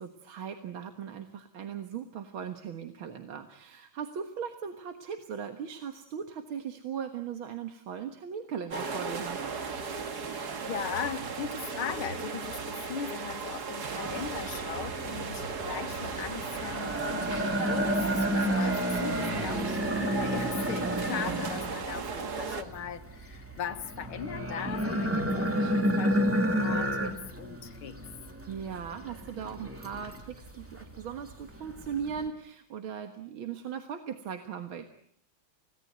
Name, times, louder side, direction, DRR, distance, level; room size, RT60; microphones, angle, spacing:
voice 1, 0.0-9.4 19.4-20.1 25.5-26.2 28.5-34.8, right 7 dB, 75° right, 7 dB, 2.3 m, -39 dB
sound 1, 8.7-22.6, right 5 dB, 50° right, 2.2 m, -36 dB
voice 2, 10.3-28.0, left 8 dB, 80° left, 10 dB, 2.2 m, -39 dB
sound 2, 14.0-32.3, equal, 5° right, 2.8 m, -31 dB
30.0 x 18.5 x 9.3 m, 0.68 s
omnidirectional pair, 2.3 m